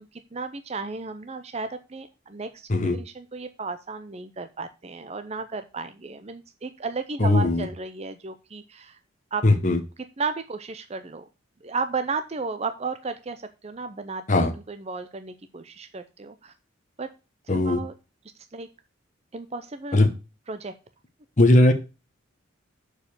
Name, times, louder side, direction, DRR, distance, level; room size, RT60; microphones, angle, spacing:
voice 1, 0.0-9.0 9.3-9.5 10.2-11.2 11.6-16.5 17.0-17.1 17.5-17.9 18.5-18.7 19.3-20.0 20.5-20.7, right 4 dB, 30° right, 9 dB, 0.5 m, -34 dB
voice 2, 7.2-7.7 9.4-9.8 14.3-14.5 17.5-17.8 19.9-20.1 21.4-21.7, left 2 dB, 35° left, 5 dB, 0.9 m, -18 dB
6.7 x 4.8 x 6.9 m, 0.30 s
head